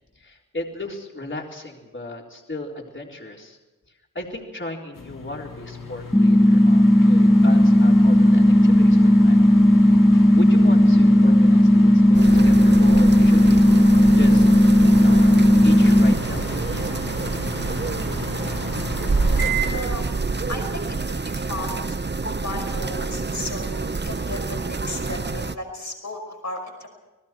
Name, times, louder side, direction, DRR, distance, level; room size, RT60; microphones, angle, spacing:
voice 1, 0.2-3.6 4.1-9.4 10.3-13.6 14.0-14.5 15.0-17.7, left 1 dB, 35° left, -1 dB, 4.0 m, -36 dB
sound 1, 4.9-21.4, left 2 dB, 85° left, 2.1 m, -34 dB
sound 2, 6.1-16.1, equal, 5° left, 1.1 m, -14 dB
sound 3, 12.1-25.6, right 4 dB, 35° right, 0.8 m, -27 dB
voice 2, 19.7-20.0 20.5-20.8 21.2-26.9, left 2 dB, 60° left, 3 dB, 5.6 m, -35 dB
30.0 x 20.5 x 4.5 m, 1.1 s
wide cardioid pair, 70°, 32 cm